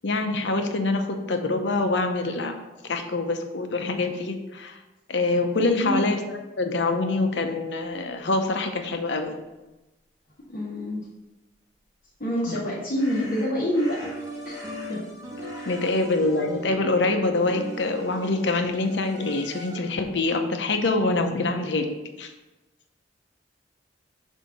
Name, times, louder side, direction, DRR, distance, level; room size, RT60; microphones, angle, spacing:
voice 1, 0.0-2.6 2.9-4.8 5.1-9.4 12.5-12.6 15.7-21.9 22.2-22.3, left 2 dB, 75° left, 5 dB, 0.7 m, -25 dB
voice 2, 5.7-6.1 10.5-11.0 12.2-14.0 14.4-14.6 14.9-15.0 15.5-15.7, equal, 55° left, -8 dB, 1.5 m, -27 dB
sound 1, 11.8-11.9 13.0-15.1 15.4-17.5, left 1 dB, 25° left, 1.7 m, -45 dB
sound 2, 14.0-20.1, right 1 dB, 20° right, 1.0 m, -39 dB
7.0 x 2.8 x 5.8 m, 1.1 s
head